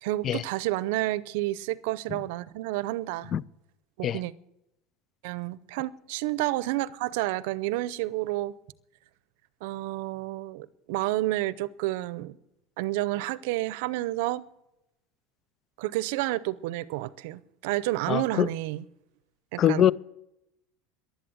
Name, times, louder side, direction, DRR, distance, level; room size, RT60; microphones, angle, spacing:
voice 1, 0.0-3.3 4.0-4.3 5.2-8.5 9.6-12.4 12.8-14.4 15.8-18.8 19.5-19.9, right 17 dB, 75° right, 0.6 m, -30 dB
voice 2, 18.1-18.5 19.6-19.9, left 10 dB, 40° left, 0.4 m, -23 dB
11.5 x 11.5 x 7.7 m
supercardioid pair, 100°, 0 cm